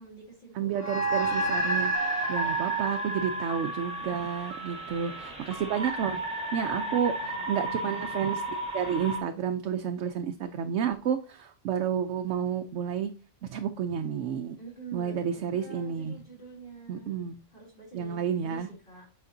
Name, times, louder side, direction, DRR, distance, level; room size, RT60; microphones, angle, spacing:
voice 1, 0.0-1.4 2.3-3.4 4.8-5.4 6.8-8.0 14.6-17.2 17.5-19.0, right 3 dB, 45° left, -4 dB, 3.2 m, -48 dB
voice 2, 0.5-1.9 2.3-6.2 6.5-13.1 13.5-14.6 14.9-16.2 16.9-17.4 17.9-18.7, right 8 dB, 75° right, 6 dB, 0.9 m, -31 dB
sound 1, 0.8-5.5, right 1 dB, 15° left, 1.1 m, -31 dB
Data transmission sound, 1.9-9.2, right 3 dB, 5° right, 1.4 m, -34 dB
8.2 x 5.1 x 2.6 m, 0.37 s
omnidirectional pair, 1.3 m